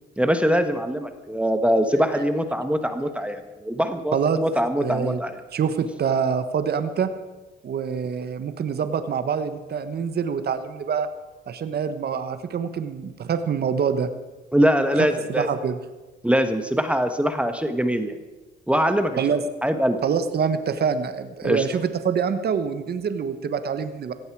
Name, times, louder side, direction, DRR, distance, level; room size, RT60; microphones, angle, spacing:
voice 1, 0.2-5.3 14.5-15.5 16.2-18.1 18.7-20.0 21.4-21.6, equal, 5° right, 8 dB, 1.3 m, -23 dB
voice 2, 4.8-5.2 5.5-7.1 7.6-11.1 11.5-14.1 15.0-15.8 19.2-19.4 20.0-24.1, right 6 dB, 55° right, 10 dB, 1.3 m, -25 dB
17.5 x 14.5 x 4.8 m, 1.2 s
cardioid pair, 90°, 20 cm